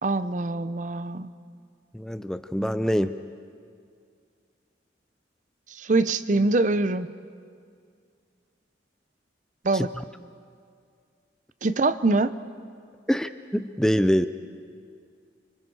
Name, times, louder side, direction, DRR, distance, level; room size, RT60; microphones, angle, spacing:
voice 1, 0.0-1.3 5.7-7.1 9.6-9.9 11.6-12.3, right 2 dB, 45° right, 13 dB, 0.6 m, -24 dB
voice 2, 1.9-3.3 9.7-9.9 13.1-14.3, equal, 5° left, 11 dB, 0.4 m, -25 dB
29.0 x 25.0 x 4.7 m, 2.2 s
head